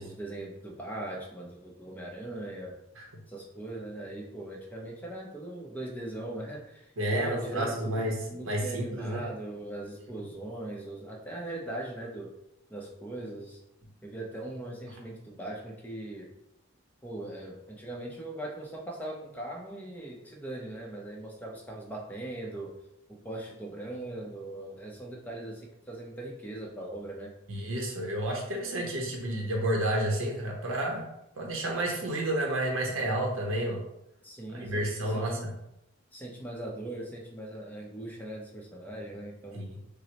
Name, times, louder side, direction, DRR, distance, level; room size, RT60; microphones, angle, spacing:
voice 1, 0.0-2.8 3.3-6.9 7.1-12.3 12.7-13.6 14.0-16.3 17.0-22.8 23.1-27.3 34.2-35.5 36.1-39.6, right 1 dB, 10° left, -1 dB, 0.6 m, -40 dB
voice 2, 7.0-9.2 27.5-31.1 31.4-33.8 34.5-35.5 39.5-39.7, right 1 dB, 85° right, 0 dB, 0.7 m, -30 dB
5.9 x 2.0 x 2.9 m, 0.84 s
head